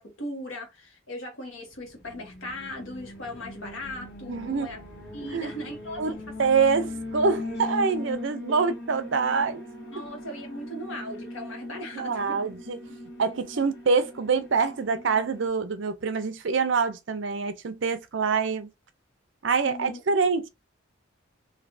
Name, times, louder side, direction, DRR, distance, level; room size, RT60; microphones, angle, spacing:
voice 1, 0.0-4.8 5.1-6.2 8.5-8.6 9.9-12.4 19.6-20.0, left 1 dB, 80° left, 1.4 m, -38 dB
Alarm, 2.0-15.5, left 1 dB, 60° left, 1.4 m, -40 dB
voice 2, 4.3-4.7 5.2-5.5 6.0-9.6 12.0-12.8 13.2-18.7 19.4-20.5, right 5 dB, 65° right, 0.5 m, -25 dB
3.0 x 2.6 x 2.6 m
head